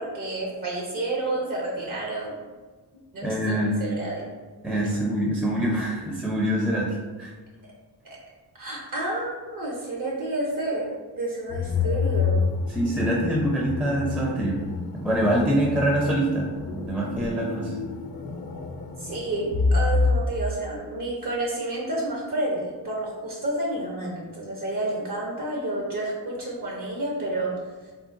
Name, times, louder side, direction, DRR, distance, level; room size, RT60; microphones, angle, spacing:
voice 1, 0.0-2.4 3.1-4.3 4.8-5.0 8.0-8.2 8.5-10.9 11.1-12.4 19.0-27.6, right 2 dB, 55° right, -2 dB, 0.7 m, -30 dB
voice 2, 3.2-3.7 4.6-7.3 12.7-14.6 15.0-17.7, right 1 dB, 5° right, -3 dB, 0.4 m, -25 dB
sound 1, 11.5-20.1, left 4 dB, 60° left, 0.5 m, -28 dB
3.7 x 2.1 x 2.5 m, 1.3 s
cardioid pair, 80°, 40 cm